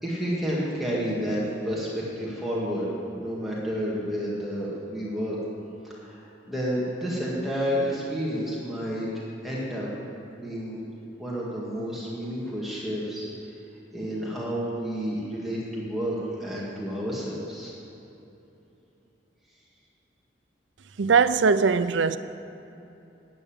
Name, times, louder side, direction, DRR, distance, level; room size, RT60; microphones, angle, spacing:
voice 1, 0.0-2.9 3.1-5.4 5.8-9.1 9.4-9.9 10.4-10.8 11.2-13.3 13.9-17.7, equal, ahead, 2.1 m, -30 dB
voice 2, 21.0-22.2, right 5 dB, 80° right, 0.5 m, -20 dB
12.0 x 8.5 x 8.9 m
head